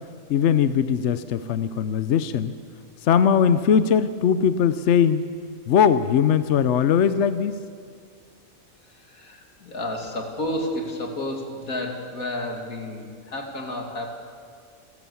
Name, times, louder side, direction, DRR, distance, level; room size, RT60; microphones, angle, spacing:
voice 1, 0.3-2.5 3.0-5.3 5.7-7.6, left 7 dB, 60° left, 12 dB, 0.9 m, -20 dB
voice 2, 9.1-14.1, left 1 dB, 85° left, 2 dB, 3.0 m, -31 dB
28.5 x 13.0 x 7.2 m, 2.2 s
omnidirectional pair, 1.4 m